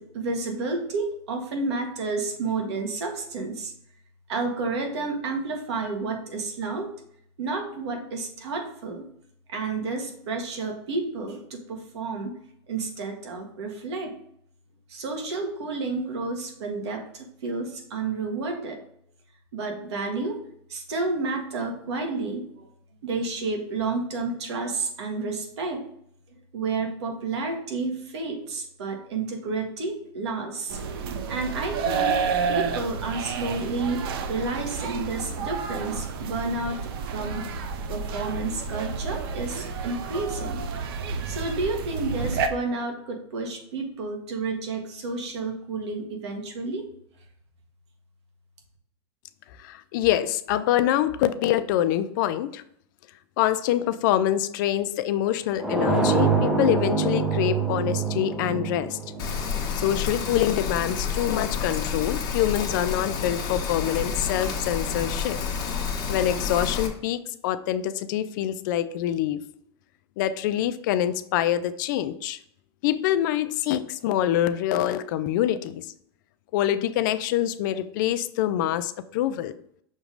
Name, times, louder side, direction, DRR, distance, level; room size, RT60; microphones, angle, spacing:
voice 1, 0.0-3.7 4.3-6.9 7.4-9.0 9.5-12.4 12.7-14.1 14.9-18.8 19.5-20.4 20.7-22.7 23.0-25.8 26.3-30.8 31.3-37.5 37.9-40.6 41.3-46.9, right 3 dB, 85° right, 2 dB, 1.6 m, -30 dB
sound 1, 30.7-42.5, right 5 dB, 60° right, 0.7 m, -30 dB
voice 2, 49.6-52.6 53.4-59.0 59.8-65.4 66.1-69.4 70.2-72.4 72.8-75.9 76.5-79.5, left 12 dB, 45° left, 12 dB, 0.4 m, -25 dB
sound 2, 55.6-60.3, right 4 dB, 5° right, 0.6 m, -25 dB
Rain, 59.2-66.9, left 6 dB, 30° left, 1.0 m, -29 dB
6.3 x 3.0 x 5.1 m, 0.68 s
supercardioid pair, 165°, 14 cm